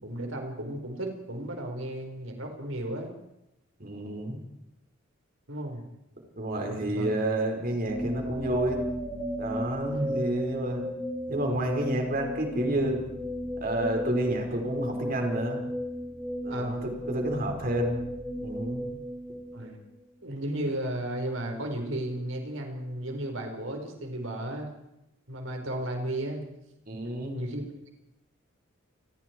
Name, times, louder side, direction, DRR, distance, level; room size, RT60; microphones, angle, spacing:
voice 1, 0.0-3.1 5.5-5.8 6.9-7.1 9.9-10.2 14.2-14.3 16.5-16.7 19.5-19.7 20.2-24.7 25.3-26.4 27.3-27.9, right 1 dB, 75° right, 3 dB, 4.8 m, -34 dB
voice 2, 3.8-4.4 6.4-8.8 9.4-10.8 11.3-13.0 13.6-15.6 16.4-18.0 18.4-18.9 26.9-27.4, right 1 dB, 45° right, 2 dB, 5.2 m, -30 dB
sound 1, 7.9-19.9, equal, 10° right, 5.2 m, -35 dB
29.0 x 20.5 x 4.7 m, 0.85 s
head